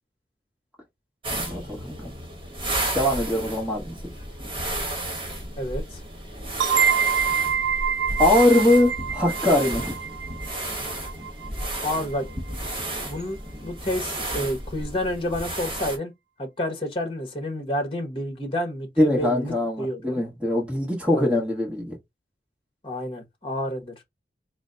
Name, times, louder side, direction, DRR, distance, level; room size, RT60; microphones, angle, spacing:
sound 1, 1.2-16.0, right 1 dB, 30° right, 1.3 m, -32 dB
voice 1, 1.3-2.1 2.9-4.0 8.2-10.0 19.0-22.0, left 1 dB, 5° right, 1.2 m, -22 dB
voice 2, 5.6-6.0 11.8-12.3 13.0-16.1 16.4-20.2 21.1-21.4 22.8-23.9, left 1 dB, 30° left, 1.1 m, -29 dB
sound 2, 6.6-12.0, right 7 dB, 85° right, 0.4 m, -26 dB
4.0 x 2.1 x 3.8 m
head